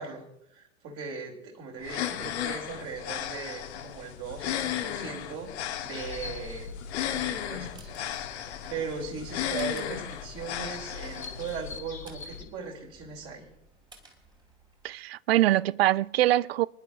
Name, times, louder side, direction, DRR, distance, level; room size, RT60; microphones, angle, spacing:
voice 1, 0.0-6.7 7.1-8.3 8.7-13.5, right 5 dB, 35° right, 3.1 m, -39 dB
sound 1, 1.8-11.8, left 10 dB, 55° left, 1.3 m, -35 dB
sound 2, 5.9-12.4, left 4 dB, 80° left, 1.6 m, -44 dB
sound 3, 7.3-15.0, right 2 dB, 10° right, 2.3 m, -56 dB
voice 2, 14.8-16.7, right 15 dB, 50° right, 0.4 m, -23 dB
25.5 x 11.0 x 2.6 m
figure-of-eight pair, 90°, 40 cm